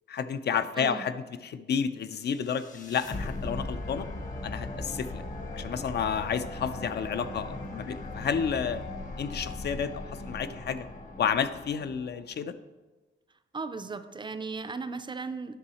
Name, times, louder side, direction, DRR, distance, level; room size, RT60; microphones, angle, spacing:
voice 1, 0.1-4.1 4.4-5.2 5.5-8.8 9.2-10.9 11.2-12.5, left 7 dB, 55° left, 11 dB, 0.4 m, -31 dB
voice 2, 0.8-1.1 13.5-15.5, right 4 dB, 25° right, 10 dB, 0.4 m, -36 dB
sound 1, 2.2-12.4, left 2 dB, 40° left, 1.0 m, -39 dB
9.8 x 6.3 x 4.1 m, 1.2 s
wide cardioid pair, 165°, 20 cm